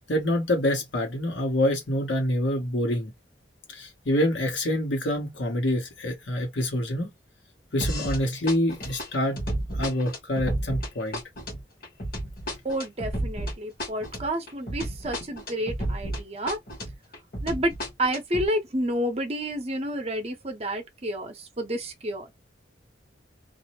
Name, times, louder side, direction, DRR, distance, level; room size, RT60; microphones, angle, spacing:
voice 1, 0.1-3.1 3.7-7.1 7.7-9.4 9.7-11.2, left 1 dB, 85° left, 1.1 m, -26 dB
sound 1, 7.8-8.2 8.5-16.2 16.5-18.5, right 1 dB, 55° left, 1.2 m, -32 dB
voice 2, 12.6-16.6 17.4-17.7 18.0-22.3, equal, 35° right, 0.7 m, -30 dB
2.5 x 2.0 x 2.9 m
head